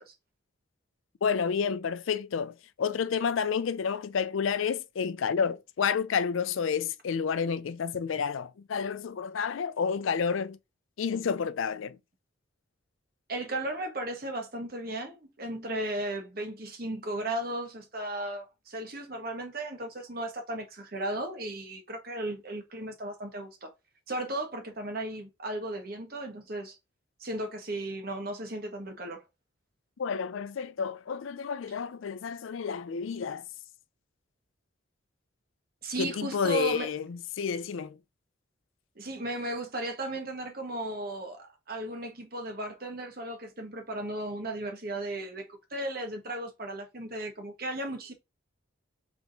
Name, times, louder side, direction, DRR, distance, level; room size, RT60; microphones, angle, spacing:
voice 1, 1.2-10.6 11.0-12.0 30.0-33.4 36.0-38.0, left 6 dB, 80° left, 0.4 m, -30 dB
voice 2, 13.3-23.7 24.1-26.8 27.2-29.2 35.8-36.9 39.0-48.1, right 1 dB, 50° right, 1.2 m, -35 dB
3.6 x 3.5 x 3.9 m
head